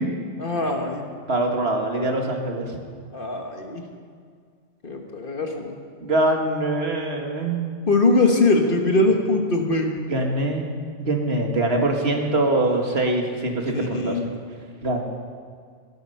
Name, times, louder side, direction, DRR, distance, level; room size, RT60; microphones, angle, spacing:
voice 1, 0.4-1.0 3.1-3.8 4.8-5.8 7.9-9.9 13.7-14.3, left 2 dB, 45° left, 3 dB, 1.6 m, -21 dB
voice 2, 1.3-2.7 6.0-7.8 10.1-10.7 11.0-14.2 14.8-15.0, right 2 dB, 60° right, 2 dB, 2.0 m, -23 dB
16.5 x 13.5 x 5.7 m, 2.1 s
omnidirectional pair, 1.2 m